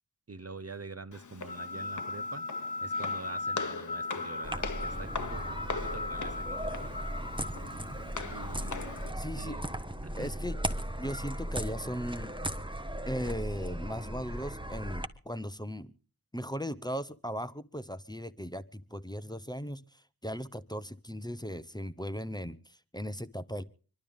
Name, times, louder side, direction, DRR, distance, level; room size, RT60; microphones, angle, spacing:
voice 1, 0.3-2.5 2.8-6.8 8.2-9.0 9.3-9.6 10.0-10.3, right 3 dB, 40° right, 0.7 m, -45 dB
Walk footsteps, 1.1-9.1, left 4 dB, 50° left, 0.9 m, -41 dB
sound 1, 1.5-7.8, left 3 dB, 80° left, 0.9 m, -38 dB
sound 2, 4.4-15.1, right 1 dB, 10° right, 1.2 m, -37 dB
voice 2, 9.2-9.6 10.2-10.6 11.0-12.3 13.1-15.9 16.3-23.6, equal, 10° left, 0.8 m, -38 dB
25.5 x 12.0 x 3.6 m
wide cardioid pair, 65°, 39 cm